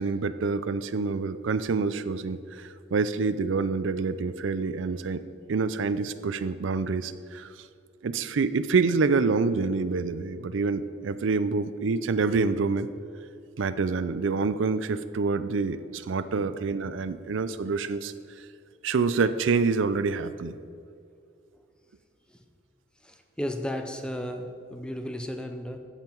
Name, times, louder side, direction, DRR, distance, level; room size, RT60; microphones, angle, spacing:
voice 1, 0.0-5.2 5.5-7.5 8.0-12.9 13.6-18.1 18.8-20.6, right 4 dB, 80° right, 13 dB, 0.5 m, -27 dB
voice 2, 23.0-25.8, equal, 5° left, 6 dB, 0.6 m, -34 dB
14.5 x 5.7 x 4.5 m, 2.4 s
head